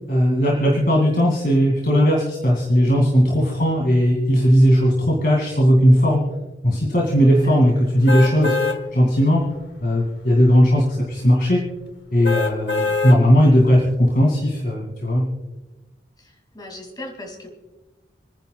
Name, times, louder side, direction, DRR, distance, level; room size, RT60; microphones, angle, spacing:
voice 1, 0.1-6.2 6.6-8.5 8.9-9.4 9.8-11.6 12.1-15.2, equal, 55° left, -3 dB, 2.5 m, -17 dB
voice 2, 7.4-7.8 12.8-13.0 16.2-17.5, left 1 dB, 25° left, 2 dB, 2.5 m, -39 dB
sound 1, 8.1-8.8 9.3-9.4 12.2-13.2 13.7-13.8, left 4 dB, 85° left, 1.1 m, -23 dB
29.5 x 10.5 x 2.4 m, 1.1 s
head